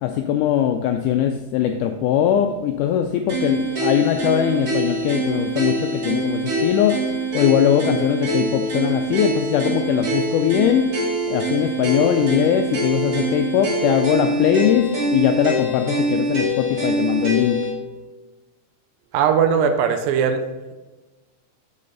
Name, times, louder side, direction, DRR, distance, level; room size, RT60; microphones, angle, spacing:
voice 1, 0.0-7.0 7.3-10.9 11.3-17.6, left 10 dB, 85° left, 5 dB, 1.8 m, -20 dB
sound 1, 3.3-17.7, right 2 dB, 35° right, 1.6 m, -24 dB
voice 2, 19.1-20.5, right 7 dB, 85° right, 7 dB, 2.4 m, -19 dB
7.8 x 7.5 x 3.8 m, 1.2 s
omnidirectional pair, 4.1 m